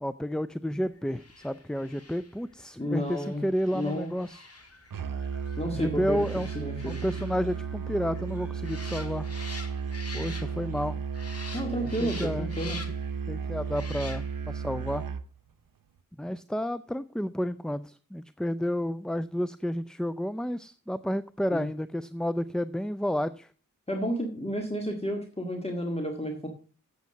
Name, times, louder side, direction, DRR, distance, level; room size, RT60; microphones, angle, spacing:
voice 1, 0.0-4.5 5.7-6.5 6.8-9.3 10.1-11.0 11.8-12.5 13.3-15.0 16.2-23.5, equal, ahead, 15 dB, 0.4 m, -31 dB
sound 1, 1.1-10.8 11.1-13.2 13.7-14.5 14.9-15.0, left 3 dB, 45° left, 1.9 m, -46 dB
voice 2, 2.8-3.4 3.7-4.1 5.6-6.2 6.6-6.9 11.5-12.8 21.5-21.6 23.9-26.5, equal, 20° left, 2 dB, 1.9 m, -31 dB
Musical instrument, 4.9-15.3, right 6 dB, 85° right, 0.7 m, -34 dB
8.3 x 8.3 x 6.6 m, 0.39 s
wide cardioid pair, 65°, 33 cm